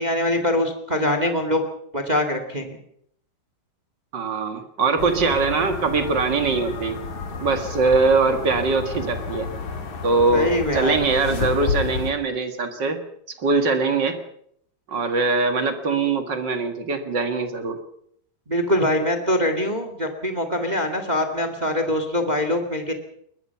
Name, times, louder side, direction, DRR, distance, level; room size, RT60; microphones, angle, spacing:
voice 1, 0.0-1.6 1.9-2.8 10.3-11.0 18.5-22.9, left 1 dB, 25° right, 7 dB, 0.9 m, -23 dB
voice 2, 4.1-7.0 7.4-9.5 10.0-13.0 13.4-14.2 14.9-17.8, right 4 dB, 45° right, 7 dB, 1.5 m, -22 dB
sound 1, 5.0-12.1, left 4 dB, 50° left, 4.0 m, -31 dB
21.5 x 20.5 x 5.8 m, 0.67 s
omnidirectional pair, 4.6 m